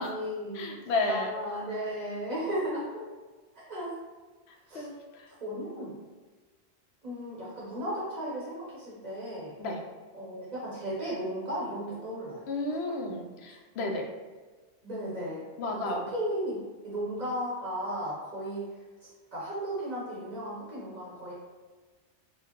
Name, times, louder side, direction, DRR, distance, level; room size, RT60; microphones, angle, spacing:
voice 1, 0.0-0.7 1.1-2.9 3.5-3.9 4.7-4.9 5.4-5.9 7.0-9.6 10.2-12.5 14.8-15.5 15.7-18.7 19.3-21.3, equal, 40° right, -7 dB, 0.8 m, -35 dB
voice 2, 0.5-1.3 4.5-5.3 9.6-9.8 12.5-14.1 15.6-16.0, left 2 dB, 70° left, 2 dB, 0.8 m, -32 dB
4.4 x 2.1 x 2.9 m, 1.3 s
omnidirectional pair, 1.2 m